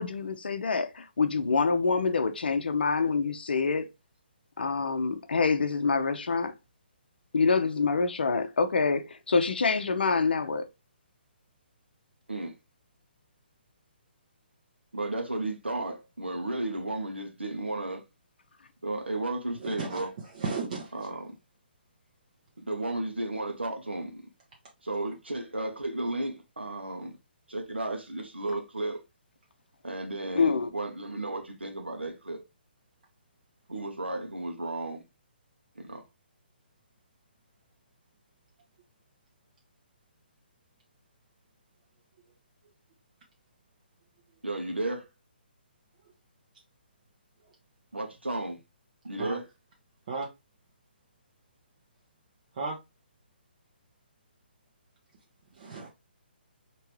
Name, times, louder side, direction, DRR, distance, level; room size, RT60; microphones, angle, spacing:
voice 1, 0.0-3.9 4.6-6.5 7.3-10.7 30.4-30.7, left 4 dB, 65° left, 0.6 m, -26 dB
voice 2, 14.9-18.0 18.8-20.2 20.9-21.3 22.6-24.2 24.8-27.2 27.5-29.0 29.8-32.4 33.7-35.0 35.7-36.0 44.4-45.1 47.9-48.6 49.0-49.5, right 2 dB, 85° right, 1.1 m, -33 dB
voice 3, 19.6-20.0 20.3-20.9 49.2-49.4 50.1-50.3 52.5-52.8 55.5-55.9, right 4 dB, 45° right, 0.9 m, -34 dB
4.4 x 3.0 x 3.1 m
figure-of-eight pair, 135°, 6 cm